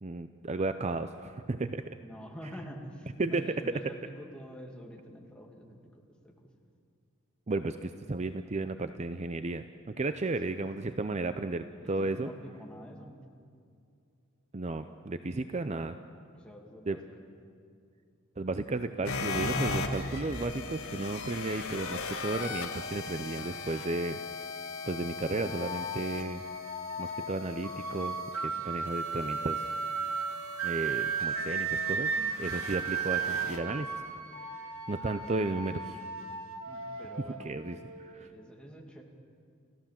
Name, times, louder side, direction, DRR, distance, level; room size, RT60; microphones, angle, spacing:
voice 1, 0.0-1.8 3.2-3.9 7.5-9.6 10.0-12.3 14.5-16.0 16.9-17.0 18.4-24.2 24.9-26.4 27.0-28.2 28.4-29.7 30.6-32.1 32.4-33.9 34.6-36.0 37.4-38.3, right 2 dB, 30° right, 10 dB, 0.6 m, -33 dB
voice 2, 2.0-5.8 6.2-6.3 11.8-13.2 16.4-17.0 32.1-32.4 36.6-37.5 37.9-39.0, equal, 5° left, 0 dB, 2.4 m, -47 dB
sound 1, 19.0-33.6, left 3 dB, 85° left, 1.9 m, -39 dB
sound 2, 21.1-36.0, right 3 dB, 90° right, 2.6 m, -55 dB
sound 3, 25.3-38.1, right 5 dB, 70° right, 1.6 m, -35 dB
29.5 x 15.0 x 7.5 m, 2.4 s
head